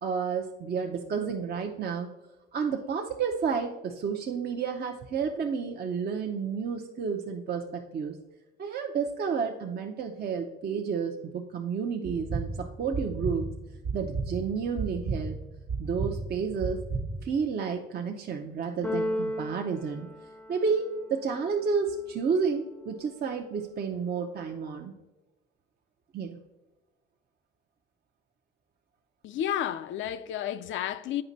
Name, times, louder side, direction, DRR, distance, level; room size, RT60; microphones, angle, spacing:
voice 1, 0.0-2.1 2.5-8.2 8.6-13.5 13.9-15.4 15.8-16.8 17.2-20.1 20.5-24.9 26.1-26.4, right 5 dB, 50° right, 0.7 m, -31 dB
sound 1, 12.0-17.4, right 4 dB, 75° right, 1.2 m, -34 dB
Keyboard (musical), 18.8-20.9, left 1 dB, 5° left, 0.5 m, -34 dB
voice 2, 29.2-31.2, left 11 dB, 75° left, 0.5 m, -31 dB
8.7 x 5.1 x 4.0 m
cardioid pair, 90°, 20 cm